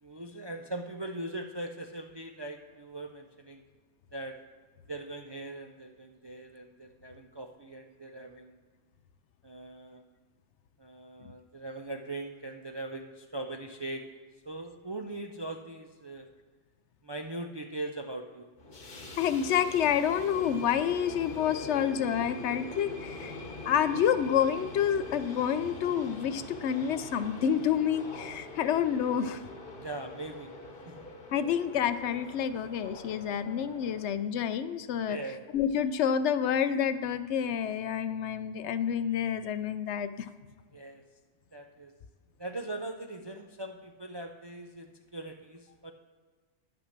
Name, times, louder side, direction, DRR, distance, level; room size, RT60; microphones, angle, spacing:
voice 1, 0.0-3.6 4.1-4.4 4.9-8.6 9.4-10.0 10.8-14.0 14.5-16.3 17.0-18.5 29.7-30.5 30.9-31.1 35.1-35.4 40.7-41.0 41.5-41.9 42.4-45.9, right 2 dB, 40° right, 4 dB, 0.4 m, -40 dB
sound 1, 18.6-34.1, left 1 dB, 50° left, 1.2 m, -44 dB
voice 2, 19.2-23.4 23.7-29.4 31.3-35.2 35.5-40.3, left 8 dB, 75° left, 12 dB, 0.8 m, -28 dB
9.8 x 6.0 x 6.5 m, 1.5 s
omnidirectional pair, 1.2 m